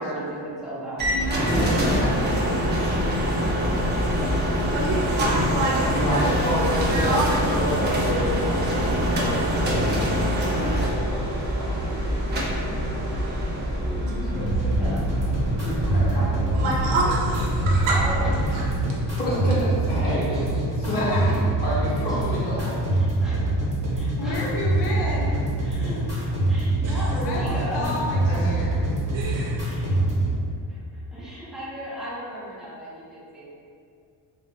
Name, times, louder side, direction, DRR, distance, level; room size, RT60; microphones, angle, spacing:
voice 1, 0.0-1.0 14.0-15.1 17.9-18.8 20.0-20.7 22.1-22.2 22.9-23.4 23.9-24.4 25.2-27.9 29.6-29.9 30.7-33.5, right 1 dB, ahead, -10 dB, 0.7 m, -36 dB
sound 1, 1.0-18.9, equal, 25° right, 0.3 m, -25 dB
voice 2, 1.1-4.1 4.7-5.5 20.9-21.3 24.2-25.4 25.8-25.9 27.2-28.9, left 2 dB, 60° left, -3 dB, 0.6 m, -34 dB
voice 3, 4.7-6.3 6.6-7.4 7.8-8.2 16.5-18.0 18.5-18.6 26.8-26.9 29.1-29.6, right 2 dB, 80° right, -3 dB, 0.7 m, -27 dB
voice 4, 5.9-7.1 7.4-11.8 15.5-16.7 18.8-20.3 20.9-22.7 28.3-28.7, equal, 20° left, -9 dB, 0.9 m, -30 dB
sound 2, 14.3-30.3, right 2 dB, 45° right, 1.0 m, -25 dB
2.5 x 2.1 x 2.7 m, 2.4 s
cardioid pair, 115°, 46 cm